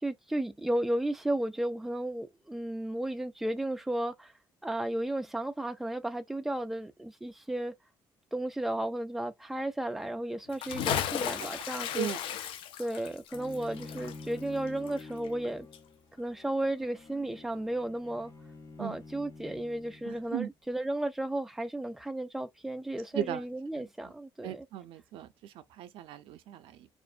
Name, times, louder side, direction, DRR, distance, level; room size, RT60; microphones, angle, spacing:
voice 1, 0.0-4.3 4.6-7.7 8.3-12.1 12.8-15.7 16.2-18.3 18.8-24.7, right 1 dB, 5° right, 0.3 m, -34 dB
Bathtub (filling or washing) / Splash splatter, 10.5-15.5 15.7-15.8, left 9 dB, 80° left, 0.4 m, -35 dB
Bowed string instrument, 13.3-20.4, left 3 dB, 35° left, 0.6 m, -48 dB
voice 2, 20.0-20.5 23.1-23.4 23.8-23.9 24.4-26.9, right 10 dB, 85° right, 0.4 m, -37 dB
2.5 x 2.1 x 2.4 m
cardioid pair, 150°, 9 cm